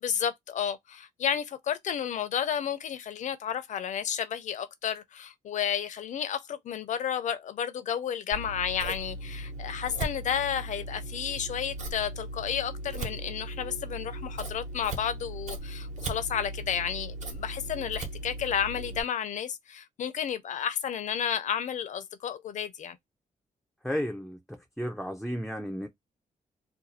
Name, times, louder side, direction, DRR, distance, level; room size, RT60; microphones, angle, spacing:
voice 1, 0.0-23.0, left 8 dB, 65° left, 0.5 m, -32 dB
Scissors, 8.3-19.0, right 2 dB, 60° right, 1.1 m, -38 dB
voice 2, 23.8-25.9, equal, ahead, 0.4 m, -33 dB
2.6 x 2.3 x 4.0 m
wide cardioid pair, 135°, 14 cm